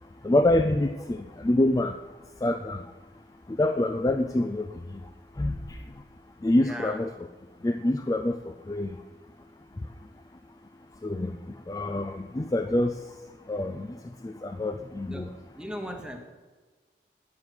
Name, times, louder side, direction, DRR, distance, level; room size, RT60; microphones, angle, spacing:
voice 1, 0.2-2.0 2.4-2.8 3.5-4.7 5.4-5.8 6.4-7.1 7.6-8.9 11.0-11.4 11.7-12.9 13.5-14.0 14.2-15.3, left 1 dB, 20° left, 6 dB, 0.3 m, -26 dB
voice 2, 6.6-7.1 15.0-16.2, equal, 5° right, 4 dB, 1.0 m, -38 dB
9.4 x 7.1 x 6.3 m, 1.4 s
head